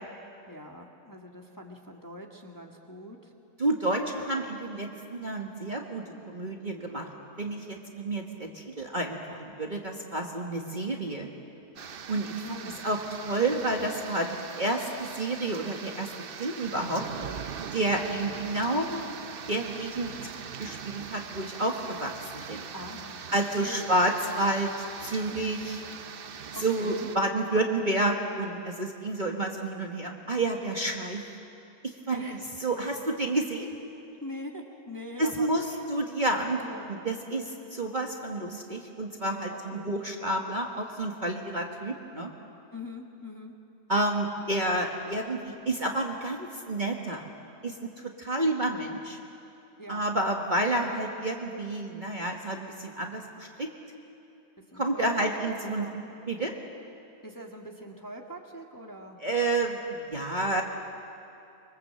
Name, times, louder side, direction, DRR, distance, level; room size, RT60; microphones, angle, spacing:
voice 1, 0.5-3.3 12.4-12.8 22.7-23.9 26.5-27.1 32.1-32.5 34.2-35.8 36.6-36.9 39.5-39.9 42.7-43.5 49.8-50.0 54.7-55.3 55.6-56.0 57.2-59.2, equal, 10° left, 1 dB, 1.6 m, -43 dB
voice 2, 3.6-7.1 7.4-11.3 12.1-16.1 16.4-17.0 17.7-19.0 19.5-20.1 20.6-22.6 23.3-24.7 25.0-25.8 26.5-31.2 31.8-32.2 32.6-33.7 35.2-42.3 43.9-47.2 47.6-47.9 48.2-49.2 49.9-53.7 54.7-55.9 56.3-56.5 59.2-60.6, right 2 dB, 30° right, 1 dB, 1.5 m, -30 dB
sound 1, 11.8-27.2, right 7 dB, 50° right, 0.7 m, -41 dB
25.0 x 23.0 x 7.6 m, 2.8 s
omnidirectional pair, 1.7 m